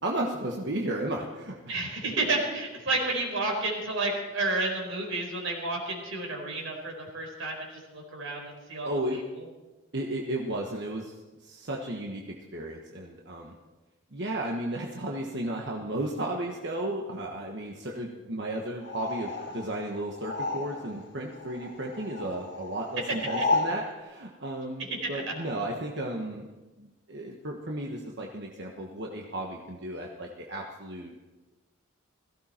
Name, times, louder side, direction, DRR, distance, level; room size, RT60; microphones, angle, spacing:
voice 1, 0.0-1.7 8.8-9.2 9.9-11.1 11.4-12.2 12.5-13.6 14.1-26.5 26.8-31.1, right 1 dB, 55° right, -1 dB, 1.4 m, -34 dB
voice 2, 1.7-9.4 23.4-23.5 25.0-25.2, right 2 dB, 70° right, 0 dB, 4.6 m, -31 dB
sound 1, 18.8-21.1 21.3-23.8, left 3 dB, 55° left, 2.0 m, -32 dB
17.0 x 15.5 x 4.4 m, 1.2 s
head